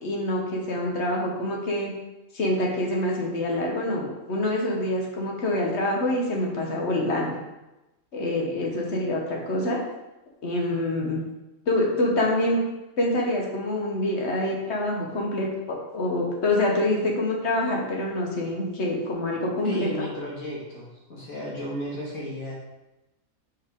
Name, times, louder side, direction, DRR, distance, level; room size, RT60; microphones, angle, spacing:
voice 1, 0.0-1.9 2.3-7.3 8.1-9.8 10.4-11.2 11.7-12.6 13.0-20.1, left 1 dB, 55° left, -1 dB, 1.2 m, -26 dB
voice 2, 19.6-22.5, equal, 75° left, -6 dB, 2.2 m, -33 dB
5.4 x 4.7 x 3.6 m, 1.0 s
omnidirectional pair, 1.5 m